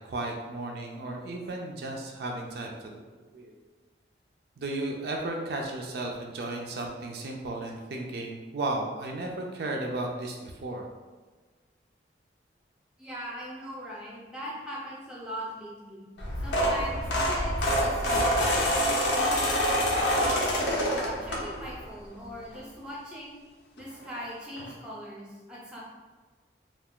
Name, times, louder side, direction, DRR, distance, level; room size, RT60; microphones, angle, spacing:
voice 1, 0.0-3.0 3.3-3.5 4.6-10.9, right 2 dB, 65° right, 1 dB, 0.4 m, -34 dB
voice 2, 13.0-16.1 16.4-18.6 19.1-23.4 23.8-25.8, equal, 5° right, -5 dB, 0.6 m, -40 dB
sound 1, 16.2-21.8 22.3-22.5 23.8-23.9 24.1-24.2 24.6-24.7, equal, 90° left, 0.6 m, -26 dB
2.4 x 2.3 x 3.6 m, 1.4 s
head